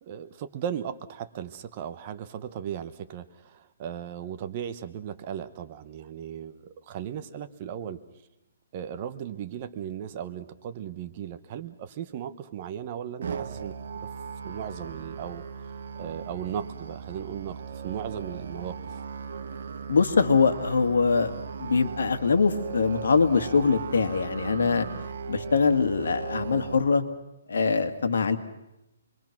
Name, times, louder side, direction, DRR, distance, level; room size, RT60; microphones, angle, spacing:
voice 1, 0.0-8.0 8.7-13.7 14.4-15.4 16.0-18.9, right 9 dB, 25° right, 11 dB, 0.9 m, -36 dB
Musical instrument, 13.2-26.7, right 6 dB, 60° right, 1.3 m, -37 dB
voice 2, 19.9-21.3 21.6-24.9 25.3-27.0 27.5-28.4, left 5 dB, 80° left, 8 dB, 2.0 m, -23 dB
27.5 x 22.0 x 6.0 m, 0.91 s
hypercardioid pair, 170°, 0 cm